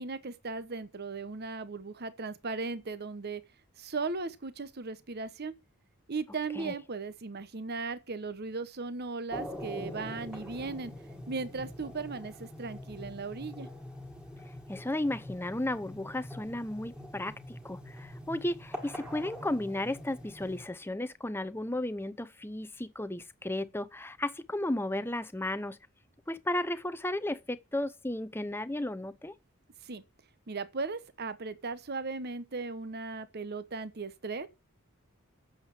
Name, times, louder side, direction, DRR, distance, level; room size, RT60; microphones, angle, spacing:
voice 1, 0.0-3.4 3.8-5.5 6.1-10.9 11.3-13.7 29.8-30.0 30.5-34.5, right 4 dB, 50° right, 1.0 m, -37 dB
sound 1, 9.3-20.6, left 1 dB, 5° right, 2.4 m, -44 dB
voice 2, 14.7-25.8 26.3-29.3, left 1 dB, 10° left, 0.7 m, -34 dB
8.7 x 7.4 x 8.5 m
head